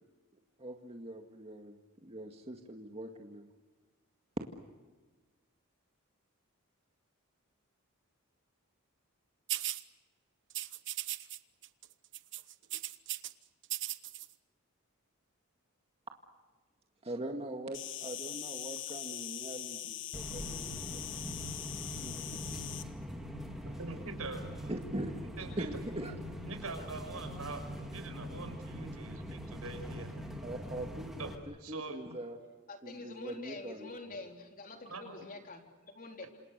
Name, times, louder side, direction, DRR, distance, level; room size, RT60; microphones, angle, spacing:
voice 1, 0.6-1.8 2.0-3.5 17.0-21.2 22.0-22.6 24.7-25.2 25.6-26.2 30.4-31.1 31.5-32.4 32.8-33.9, right 1 dB, 30° right, 3 dB, 2.0 m, -42 dB
sound 1, 9.5-9.8 10.5-11.4 11.6-11.9 12.1-13.3 13.6-14.3, right 14 dB, 55° right, 1.1 m, -37 dB
Insect, 17.7-22.8, left 12 dB, 60° left, 1.5 m, -42 dB
sound 2, 20.1-31.3, equal, ahead, 3.4 m, -43 dB
voice 2, 23.6-24.7 25.4-26.0 26.4-30.1 31.2-31.3 31.6-32.2 34.9-35.1, right 3 dB, 85° right, 6 dB, 5.9 m, -44 dB
voice 3, 32.7-36.3, left 3 dB, 40° left, 3 dB, 4.0 m, -46 dB
28.5 x 27.5 x 6.8 m, 1.3 s
head